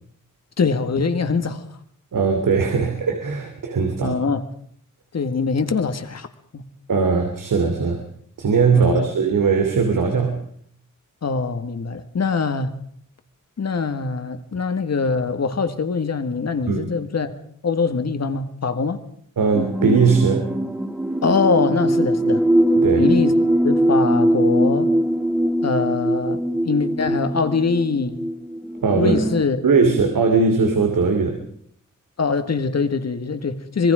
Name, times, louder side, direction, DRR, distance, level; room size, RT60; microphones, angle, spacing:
voice 1, 0.6-1.7 4.0-4.4 5.1-6.3 6.5-6.6 8.7-9.1 11.2-12.7 13.6-17.3 17.6-19.0 21.2-22.5 23.0-23.3 23.6-24.9 25.6-28.2 28.9-29.7 32.2-33.9, left 4 dB, 55° left, 1.9 m, -23 dB
voice 2, 2.1-4.2 6.9-8.0 8.4-10.4 16.7-16.8 19.4-20.5 22.8-23.1 28.8-29.1 29.6-31.4, right 5 dB, 90° right, 2.9 m, -19 dB
sound 1, 19.5-29.4, right 1 dB, 5° right, 1.8 m, -21 dB
25.5 x 22.0 x 5.1 m
wide cardioid pair, 145°, 32 cm